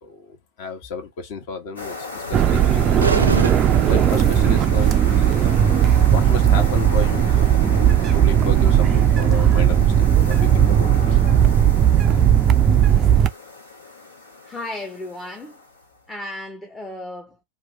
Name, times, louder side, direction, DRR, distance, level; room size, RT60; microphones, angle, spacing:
voice 1, 0.0-3.1 3.6-5.7 6.1-7.3 7.6-11.2, left 5 dB, 50° left, 1.1 m, -33 dB
sound 1, 1.8-16.0, left 3 dB, 75° left, 1.5 m, -36 dB
sound 2, 2.3-13.3, right 9 dB, 30° right, 0.4 m, -16 dB
sound 3, 3.0-4.5, right 4 dB, 75° right, 0.6 m, -25 dB
voice 2, 14.4-15.6 16.1-17.4, left 1 dB, 10° left, 0.7 m, -34 dB
2.9 x 2.5 x 3.9 m
figure-of-eight pair, 90°, 0 cm